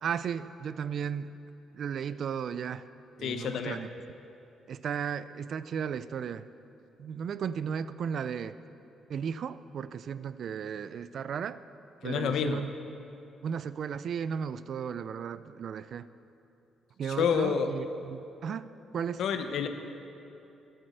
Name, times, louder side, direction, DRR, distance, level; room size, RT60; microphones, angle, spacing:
voice 1, 0.0-1.3 1.7-2.9 3.2-3.9 4.7-6.5 7.0-8.6 9.1-11.6 12.0-12.7 13.4-16.1 17.0-19.2, right 7 dB, 60° right, 15 dB, 0.4 m, -35 dB
voice 2, 3.2-3.8 12.0-12.6 17.1-17.7 19.2-19.7, left 7 dB, 75° left, 7 dB, 0.8 m, -29 dB
12.0 x 7.8 x 6.6 m, 2.9 s
cardioid pair, 90°, 0 cm